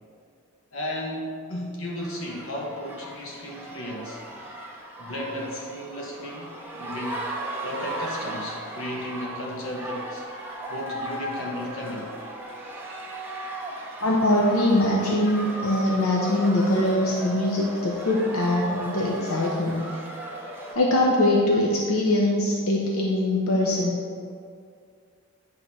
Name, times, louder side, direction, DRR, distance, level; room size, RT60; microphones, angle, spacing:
voice 1, 0.7-4.2 5.0-6.5 6.8-7.2 7.6-10.2 10.7-12.1, equal, 70° left, -2 dB, 1.2 m, -34 dB
sound 1, 2.0-20.8, right 1 dB, 10° right, 1.0 m, -36 dB
voice 2, 14.0-19.9 20.7-24.0, left 1 dB, 85° left, -2 dB, 0.9 m, -22 dB
9.8 x 3.9 x 5.9 m, 2.2 s
head